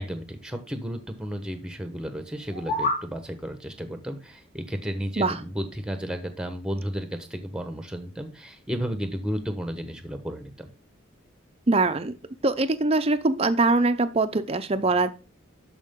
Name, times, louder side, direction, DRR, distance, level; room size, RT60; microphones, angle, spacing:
voice 1, 0.0-10.7, equal, 5° right, 7 dB, 1.1 m, -33 dB
sound 1, 2.4-3.1, left 2 dB, 40° left, 2.2 m, -28 dB
voice 2, 11.7-12.2 12.4-15.1, right 3 dB, 30° right, 9 dB, 0.6 m, -22 dB
12.0 x 5.0 x 3.7 m, 0.32 s
head